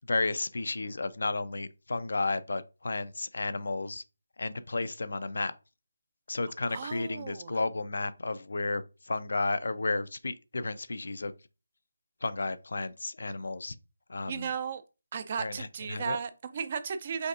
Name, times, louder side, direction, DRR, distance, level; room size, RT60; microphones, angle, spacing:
voice 1, 0.1-4.0 4.4-5.5 6.3-11.3 12.2-13.8 14.1-14.5 15.4-16.2, left 3 dB, 70° left, 0.4 m, -32 dB
voice 2, 6.7-7.6 14.3-14.8 15.1-17.3, right 6 dB, 35° right, 0.4 m, -35 dB
5.2 x 3.4 x 2.4 m
figure-of-eight pair, 170°, 0 cm